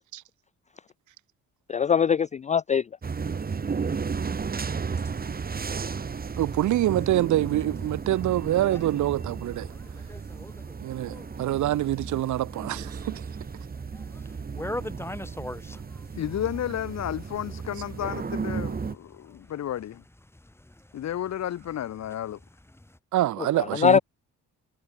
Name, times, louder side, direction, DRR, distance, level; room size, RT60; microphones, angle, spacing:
voice 1, 1.7-2.8 23.8-24.0, left 7 dB, 25° left, 0.4 m, -21 dB
sound 1, 3.0-18.9, right 5 dB, 30° right, 1.6 m, -34 dB
sound 2, 3.1-23.0, left 1 dB, 10° left, 7.5 m, -46 dB
voice 2, 6.4-9.7 10.8-13.2 23.1-24.0, right 14 dB, 75° right, 1.2 m, -26 dB
voice 3, 16.1-20.0 20.9-22.4, left 11 dB, 60° left, 1.4 m, -32 dB
cardioid pair, 90°, 30 cm